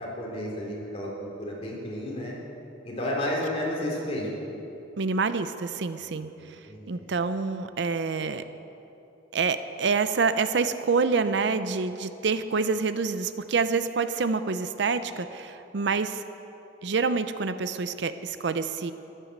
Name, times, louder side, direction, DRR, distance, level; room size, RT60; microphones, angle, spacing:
voice 1, 0.0-2.3 2.8-4.3 6.7-7.1, left 1 dB, 30° left, -3 dB, 3.1 m, -32 dB
voice 2, 5.0-6.3 6.9-8.4 9.3-16.2 16.8-18.9, right 4 dB, 65° right, 11 dB, 0.5 m, -27 dB
14.5 x 11.0 x 6.6 m, 3.0 s
head